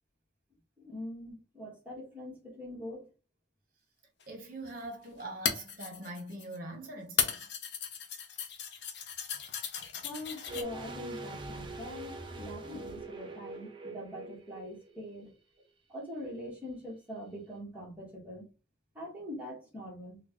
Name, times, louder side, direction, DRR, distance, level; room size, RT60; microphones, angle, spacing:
voice 1, 0.8-3.1 10.0-15.3 15.9-18.4 18.9-20.2, equal, 10° right, 1.5 m, -43 dB
sound 1, 4.2-4.3 5.2-6.6 7.2-10.6, left 7 dB, 65° left, 0.7 m, -35 dB
voice 2, 4.3-7.5 15.2-15.3, right 1 dB, 45° right, 1.2 m, -43 dB
sound 2, 10.5-15.3 15.6-15.7, right 1 dB, 25° right, 0.6 m, -43 dB
4.4 x 2.3 x 3.0 m
head